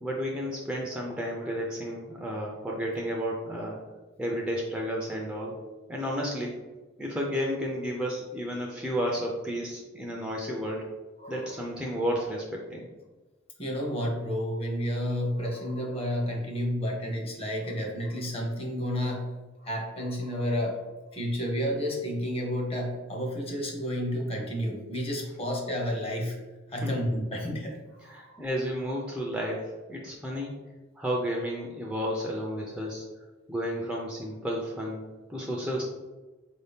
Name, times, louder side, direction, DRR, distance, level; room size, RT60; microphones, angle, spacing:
voice 1, 0.0-3.8 4.2-5.6 5.9-6.6 7.0-10.9 11.3-12.9 26.8-27.0 28.0-30.5 31.0-33.0 33.5-35.0 35.3-35.8, equal, 5° right, -2 dB, 0.4 m, -32 dB
voice 2, 11.2-11.6 13.6-19.3 19.6-20.8 21.1-26.4 26.7-28.4, equal, 30° left, 0 dB, 0.8 m, -31 dB
4.2 x 2.7 x 3.5 m, 1.2 s
head